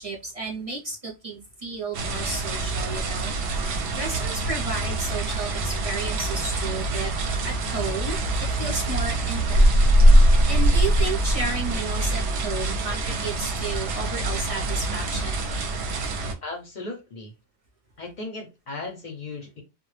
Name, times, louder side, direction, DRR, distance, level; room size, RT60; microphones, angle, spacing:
voice 1, 0.0-3.3 3.9-7.1 7.4-8.2 8.6-9.7 10.4-15.4, right 3 dB, 45° right, -3 dB, 0.5 m, -32 dB
sound 1, 1.9-16.3, right 1 dB, 65° right, 0.8 m, -23 dB
voice 2, 16.4-17.3 18.0-19.6, left 3 dB, 50° left, 2 dB, 0.6 m, -36 dB
2.1 x 2.1 x 3.1 m, 0.26 s
omnidirectional pair, 1.3 m